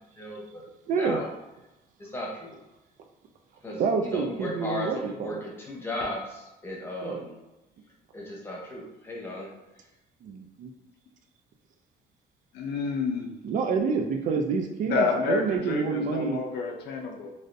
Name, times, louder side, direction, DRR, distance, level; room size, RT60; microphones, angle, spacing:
voice 1, 0.2-0.6 1.0-1.3 2.0-2.6 3.6-7.4 8.1-9.5, left 1 dB, 15° left, -4 dB, 0.8 m, -35 dB
voice 2, 0.9-1.2 3.8-5.4 7.0-7.3 10.2-10.7 13.4-16.4, right 5 dB, 50° right, 4 dB, 0.4 m, -28 dB
voice 3, 12.5-13.4 14.9-17.3, left 4 dB, 75° left, 3 dB, 0.6 m, -29 dB
3.3 x 2.5 x 2.6 m, 0.98 s
cardioid pair, 155°, 17 cm